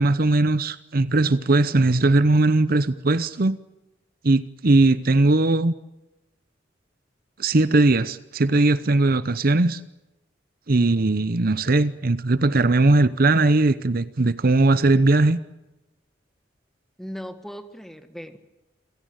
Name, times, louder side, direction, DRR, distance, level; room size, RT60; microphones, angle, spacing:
voice 1, 0.0-3.6 4.2-5.7 7.4-9.8 10.7-15.4, right 2 dB, 55° right, 0.8 m, -19 dB
voice 2, 17.0-18.4, equal, ahead, 1.6 m, -37 dB
27.5 x 17.0 x 9.1 m
head